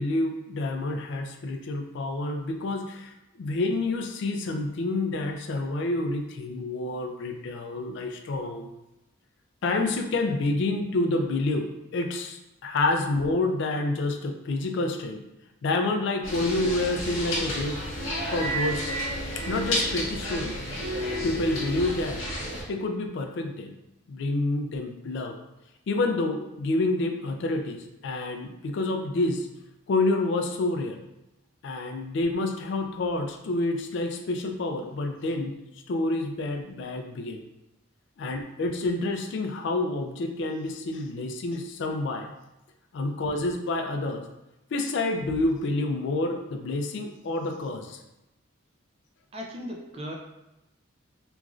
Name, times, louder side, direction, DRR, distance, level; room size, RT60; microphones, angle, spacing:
voice 1, 0.0-8.7 9.6-11.7 11.9-15.2 15.6-17.8 18.3-18.9 19.5-20.6 21.2-22.3 22.7-23.7 24.1-25.3 25.9-29.5 29.9-31.0 31.6-35.5 35.9-37.4 38.2-42.3 42.9-44.2 44.7-48.0, left 2 dB, 55° left, 5 dB, 0.3 m, -28 dB
sound 1, 16.2-22.6, equal, 80° left, 1.0 m, -31 dB
voice 2, 49.3-50.1, equal, 30° right, 1 dB, 0.4 m, -37 dB
3.0 x 2.4 x 2.4 m, 0.94 s
head